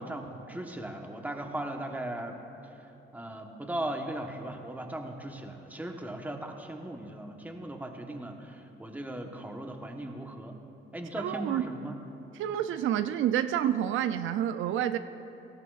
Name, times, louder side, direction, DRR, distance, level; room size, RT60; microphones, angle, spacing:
voice 1, 0.0-2.4 2.7-10.6 10.9-12.0, right 1 dB, 10° right, 3 dB, 1.1 m, -38 dB
voice 2, 11.2-11.6 12.3-15.0, right 10 dB, 80° right, 10 dB, 0.4 m, -28 dB
17.5 x 14.0 x 2.4 m, 3.0 s
cardioid pair, 90°, 20 cm